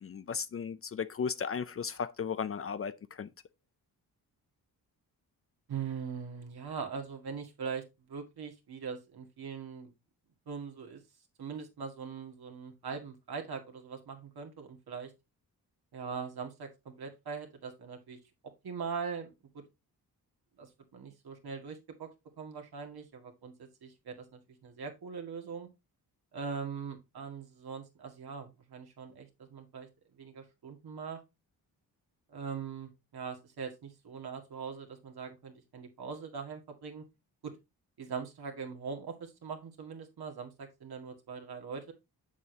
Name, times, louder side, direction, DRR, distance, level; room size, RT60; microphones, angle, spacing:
voice 1, 0.0-3.3, left 6 dB, 35° left, 0.4 m, -35 dB
voice 2, 5.7-9.9 10.5-11.0 11.4-15.1 15.9-19.6 20.6-22.1 22.4-25.7 26.3-29.9 30.2-31.2 32.3-37.0 37.4-37.5 38.0-41.9, right 6 dB, 70° right, 2.0 m, -41 dB
7.2 x 6.3 x 2.8 m
cardioid pair, 80°, 39 cm